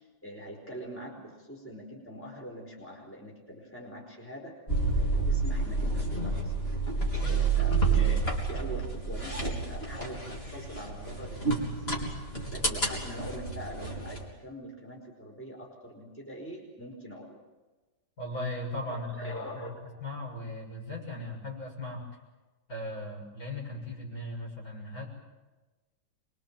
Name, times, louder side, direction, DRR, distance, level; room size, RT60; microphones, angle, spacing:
voice 1, 0.2-4.5 4.9-6.5 7.3-11.9 12.5-17.4 18.9-19.8, equal, 5° left, 0 dB, 4.7 m, -43 dB
sound 1, 4.7-14.2, right 4 dB, 30° left, 4.2 m, -29 dB
voice 2, 18.2-19.6 20.0-22.0 22.7-25.1, left 1 dB, 50° left, -1 dB, 7.2 m, -38 dB
26.0 x 23.0 x 7.5 m, 1.2 s
omnidirectional pair, 2.0 m